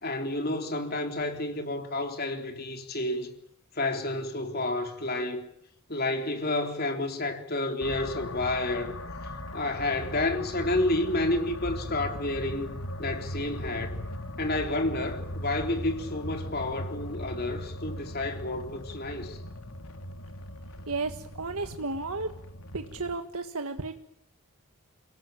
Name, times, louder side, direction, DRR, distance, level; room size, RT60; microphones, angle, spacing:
voice 1, 0.0-3.3 3.7-5.5 5.9-8.9 9.5-12.7 13.0-14.0 14.4-19.4, left 2 dB, 45° left, 3.6 m, -30 dB
sound 1, 7.8-23.1, left 1 dB, 80° left, 3.1 m, -39 dB
voice 2, 20.9-22.3 22.7-24.0, right 3 dB, 80° right, 1.7 m, -33 dB
29.5 x 18.5 x 9.1 m
head